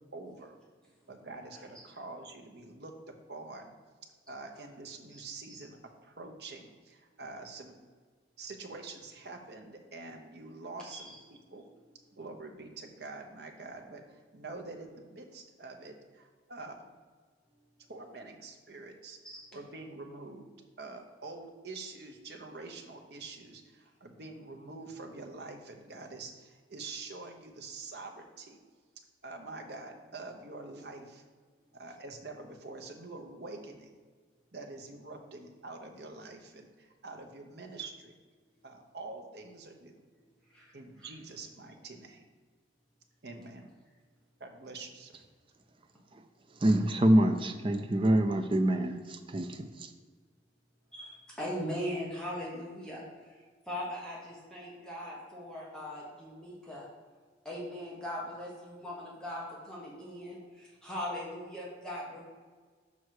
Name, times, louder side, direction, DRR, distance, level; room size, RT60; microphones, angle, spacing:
voice 1, 0.1-0.6 1.1-2.9 3.3-3.7 4.3-5.8 6.0-7.7 8.4-11.6 12.1-16.9 17.9-19.2 19.5-20.5 20.8-28.6 29.2-31.2 31.7-33.9 34.5-38.2 38.6-40.0 40.7-42.2 43.2-43.6 44.4-45.2, right 3 dB, 60° right, 4 dB, 0.9 m, -46 dB
voice 2, 46.6-49.9, right 1 dB, 30° right, 6 dB, 0.5 m, -26 dB
voice 3, 50.9-53.4 53.7-56.8 57.4-62.2, left 1 dB, 5° left, -6 dB, 1.3 m, -40 dB
6.3 x 5.5 x 4.7 m, 1.5 s
head